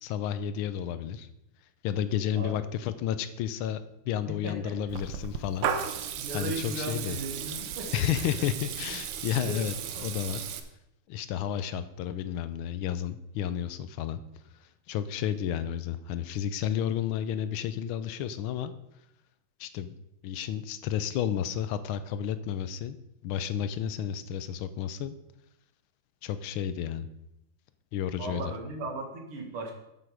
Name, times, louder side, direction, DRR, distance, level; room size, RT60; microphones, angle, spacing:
voice 1, 0.0-1.3 1.8-7.1 7.9-9.7 10.0-10.4 11.1-14.2 14.6-18.7 19.6-19.9 20.2-23.0 23.2-25.2 26.2-27.1 27.9-28.4, left 10 dB, 80° left, 12 dB, 1.4 m, -32 dB
voice 2, 4.3-4.8 6.2-8.1 9.3-9.6 9.9-10.1 28.1-29.7, right 2 dB, 85° right, 2 dB, 2.5 m, -37 dB
Water tap faucet / Liquid, 4.9-10.6, right 8 dB, 70° right, 1.4 m, -35 dB
8.0 x 7.9 x 4.9 m, 0.84 s
omnidirectional pair, 2.3 m